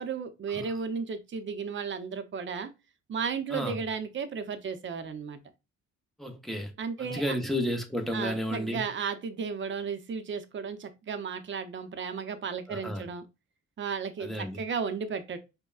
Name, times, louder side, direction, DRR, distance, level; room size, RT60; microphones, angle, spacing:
voice 1, 0.0-2.7 3.1-5.4 6.8-7.4 8.1-13.2 13.8-15.4, right 6 dB, 40° right, 0.7 m, -34 dB
voice 2, 3.5-3.8 6.2-6.7 7.0-8.8 12.7-13.1 14.2-14.6, equal, ahead, 0.8 m, -32 dB
5.1 x 2.2 x 2.4 m
cardioid pair, 90°, 30 cm